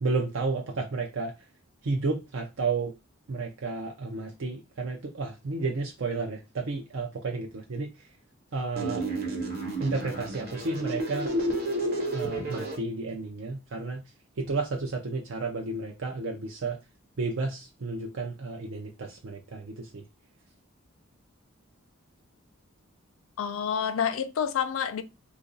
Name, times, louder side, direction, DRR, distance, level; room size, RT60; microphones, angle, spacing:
voice 1, 0.0-1.5 1.8-2.9 3.3-8.1 8.5-9.0 9.8-11.3 12.1-14.0 14.4-16.8 17.2-20.0, right 3 dB, 65° right, 0.5 m, -32 dB
sound 1, 8.8-12.8, right 1 dB, 45° right, 1.0 m, -31 dB
voice 2, 23.4-25.0, left 7 dB, 75° left, 0.4 m, -28 dB
2.8 x 2.5 x 3.9 m
head